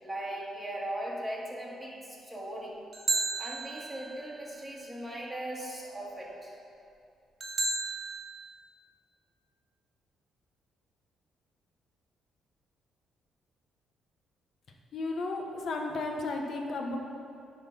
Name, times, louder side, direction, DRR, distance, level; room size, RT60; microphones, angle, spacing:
voice 1, 0.0-2.8 3.4-6.6, right 1 dB, 5° right, -5 dB, 1.7 m, -38 dB
sound 1, 2.9-4.3 7.4-8.1, right 3 dB, 40° right, 1.4 m, -32 dB
voice 2, 14.9-17.0, left 2 dB, 60° left, 2 dB, 1.0 m, -33 dB
9.9 x 3.8 x 6.0 m, 2.5 s
cardioid pair, 90°, 0 cm